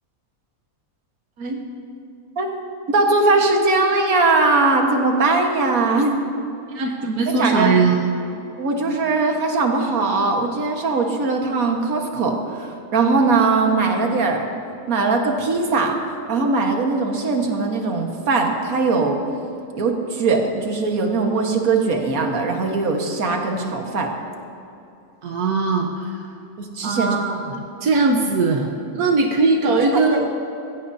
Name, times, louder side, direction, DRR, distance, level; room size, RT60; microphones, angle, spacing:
voice 1, 2.9-6.2 7.4-7.7 8.6-14.5 14.9-15.9 16.3-19.2 19.8-24.1 26.6-27.2 29.9-30.3, right 3 dB, 70° right, 2 dB, 1.9 m, -20 dB
voice 2, 6.7-8.1 25.2-26.3 26.8-30.3, right 3 dB, 90° right, 1 dB, 1.5 m, -20 dB
20.5 x 16.5 x 2.7 m, 2.8 s
omnidirectional pair, 1.6 m